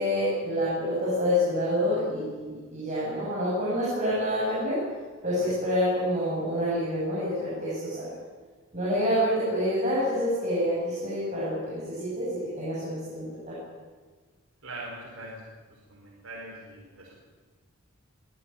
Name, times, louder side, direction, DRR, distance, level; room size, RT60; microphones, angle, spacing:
voice 1, 0.0-4.8 5.2-8.1 8.7-13.6, equal, 35° right, -8 dB, 7.9 m, -27 dB
voice 2, 14.6-15.4 15.9-17.1, right 2 dB, 65° right, -4 dB, 5.5 m, -41 dB
25.0 x 15.0 x 9.5 m, 1.4 s
head